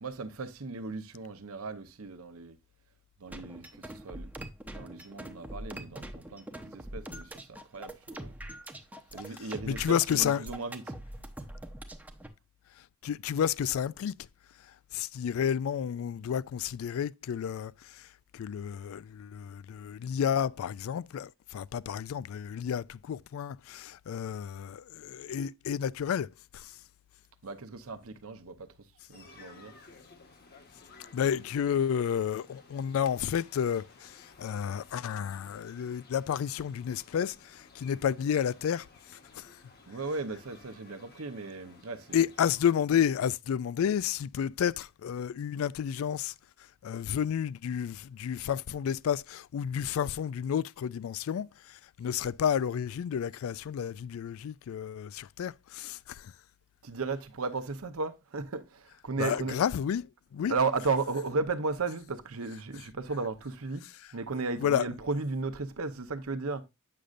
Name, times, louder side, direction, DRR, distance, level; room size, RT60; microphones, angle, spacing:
voice 1, 0.0-2.6 3.2-4.3 4.7-8.4 9.1-10.9 27.4-28.7 29.1-29.7 39.9-42.3 56.8-59.6 60.5-63.8 64.1-66.6, right 3 dB, 75° right, 0.8 m, -35 dB
sound 1, 3.3-12.3, right 1 dB, 5° right, 0.7 m, -43 dB
voice 2, 9.7-10.4 13.0-14.1 14.9-18.1 18.3-26.7 31.1-39.6 42.1-46.3 46.8-56.3 59.2-60.1 60.3-60.5 64.6-64.9, left 8 dB, 70° left, 0.3 m, -31 dB
sound 2, 29.1-42.7, left 3 dB, 50° left, 1.2 m, -56 dB
8.5 x 6.4 x 2.5 m
head